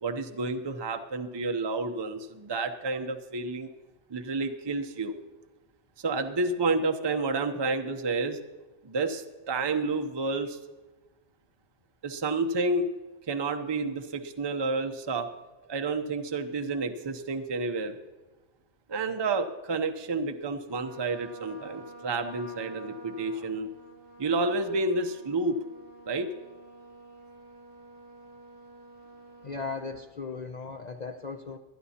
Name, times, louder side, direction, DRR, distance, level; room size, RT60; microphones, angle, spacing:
voice 1, 0.0-3.7 4.1-5.1 6.0-8.4 8.8-10.6 12.0-12.9 13.3-15.3 15.7-17.9 18.9-23.7 24.2-25.6 26.1-26.3, right 3 dB, 25° right, 6 dB, 0.6 m, -30 dB
Trumpet, 20.7-30.0, right 1 dB, 85° left, 2.5 m, -49 dB
voice 2, 29.4-31.6, left 4 dB, 45° left, 4 dB, 0.6 m, -37 dB
22.0 x 10.0 x 2.8 m, 1.2 s
omnidirectional pair, 1.3 m